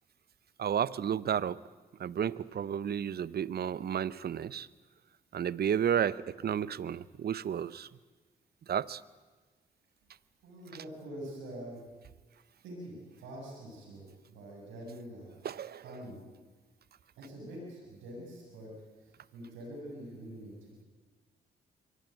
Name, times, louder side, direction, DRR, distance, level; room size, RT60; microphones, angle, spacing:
voice 1, 0.6-1.6 2.0-4.7 5.3-7.9 8.7-9.0 15.4-15.9, right 9 dB, 55° right, 20 dB, 0.8 m, -32 dB
voice 2, 10.4-11.8 12.6-15.3 15.8-16.2 17.2-18.7 19.0-20.8, right 1 dB, 80° right, -2 dB, 7.3 m, -45 dB
23.0 x 17.5 x 9.3 m, 1.3 s
hypercardioid pair, 45°, 19 cm